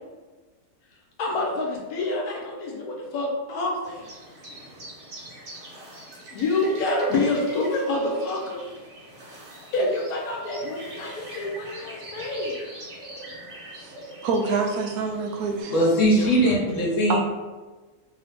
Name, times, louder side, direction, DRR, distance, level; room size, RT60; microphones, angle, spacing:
voice 1, 1.2-4.1 6.3-8.7 9.7-12.6 16.1-16.3, left 2 dB, 75° left, -1 dB, 1.3 m, -27 dB
sound 1, 3.8-15.6, right 1 dB, 40° right, 1.1 m, -43 dB
voice 2, 14.2-15.8 17.1-17.2, right 4 dB, 75° right, 3 dB, 1.0 m, -26 dB
voice 3, 15.7-17.2, equal, 60° left, -4 dB, 1.3 m, -20 dB
3.3 x 2.7 x 3.5 m, 1.2 s
omnidirectional pair, 1.6 m